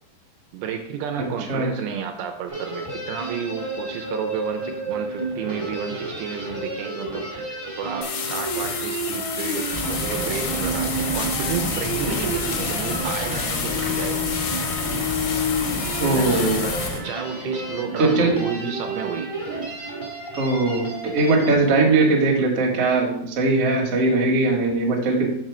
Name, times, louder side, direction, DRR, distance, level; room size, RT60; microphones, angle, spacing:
voice 1, 0.5-9.7 10.0-14.2 16.2-19.5, right 7 dB, 80° right, 5 dB, 2.5 m, -31 dB
sound 1, 2.5-21.5, right 1 dB, 35° right, 0.5 m, -31 dB
sound 2, 8.0-16.9, left 7 dB, 75° left, 1.8 m, -30 dB
sound 3, 9.7-17.0, left 1 dB, 55° left, 0.8 m, -30 dB
voice 2, 16.0-16.6 18.0-18.4 20.4-25.3, right 3 dB, 55° right, -1 dB, 1.7 m, -20 dB
6.6 x 4.4 x 6.1 m, 0.77 s
omnidirectional pair, 4.7 m